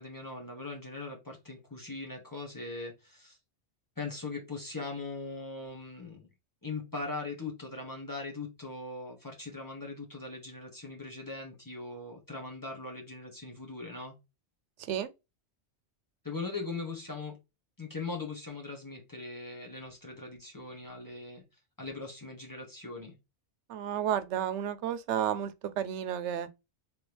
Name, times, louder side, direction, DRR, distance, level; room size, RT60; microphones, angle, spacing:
voice 1, 0.0-3.4 4.0-6.3 6.6-14.2 16.2-17.4 17.8-21.4 21.8-23.1, left 3 dB, 20° left, 1.1 m, -40 dB
voice 2, 23.7-26.5, right 10 dB, 90° right, 0.9 m, -32 dB
3.5 x 3.4 x 2.9 m
omnidirectional pair, 1.1 m